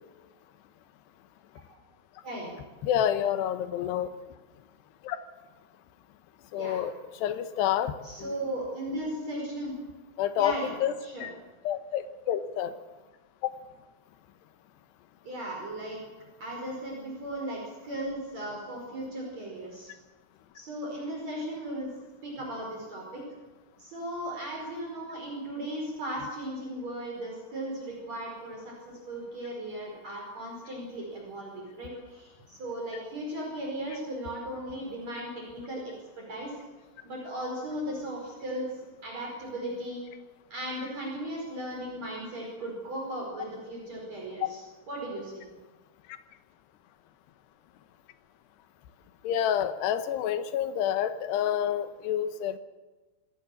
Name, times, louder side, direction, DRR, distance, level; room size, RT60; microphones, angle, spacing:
voice 1, 2.8-4.1 5.0-5.2 6.5-6.9 7.2-7.9 10.2-10.9 11.2-11.3 11.6-12.7 13.4-13.5 49.2-52.6, left 10 dB, 85° left, 10 dB, 3.2 m, -28 dB
voice 2, 8.0-9.7 10.4-10.7 11.0-11.3 15.2-16.0 16.4-19.9 20.5-21.9 22.2-23.2 23.8-36.5 37.0-38.7 39.0-40.0 40.5-45.4, right 1 dB, 40° right, -1 dB, 6.2 m, -36 dB
26.5 x 18.0 x 7.2 m, 1.2 s
omnidirectional pair, 4.8 m